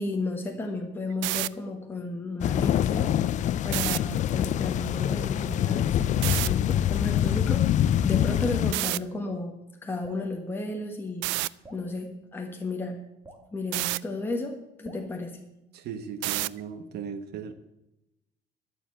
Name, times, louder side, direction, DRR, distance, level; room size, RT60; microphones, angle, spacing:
voice 1, 0.0-9.5 9.8-13.0 13.5-15.4, left 2 dB, 10° left, 2 dB, 1.4 m, -33 dB
sound 1, 1.1-1.5 3.7-4.0 6.2-6.5 8.7-9.0 11.2-11.5 13.7-14.0 16.2-16.6, right 20 dB, 90° right, 0.4 m, -28 dB
sound 2, 2.4-8.7, left 11 dB, 40° left, 0.4 m, -25 dB
Drip, 8.4-8.7 10.0-10.3 11.6-11.9 13.2-13.5 14.8-15.1, right 2 dB, 15° right, 2.0 m, -49 dB
voice 2, 15.7-17.5, right 7 dB, 60° right, 8 dB, 1.1 m, -37 dB
12.5 x 7.0 x 8.2 m, 0.90 s
cardioid pair, 140°, 19 cm